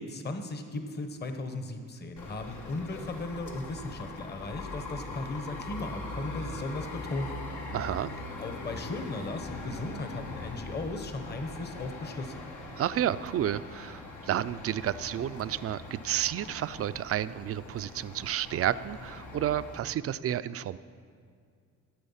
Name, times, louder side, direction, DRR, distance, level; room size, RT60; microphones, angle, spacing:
voice 1, 0.0-7.6 8.4-12.4, left 2 dB, 35° left, 6 dB, 1.1 m, -37 dB
sound 1, 2.2-19.8, left 2 dB, 80° left, 1.7 m, -42 dB
voice 2, 7.7-8.1 12.7-20.8, right 11 dB, 50° right, 15 dB, 0.4 m, -31 dB
14.5 x 7.9 x 5.6 m, 2.3 s
cardioid pair, 90°, 30 cm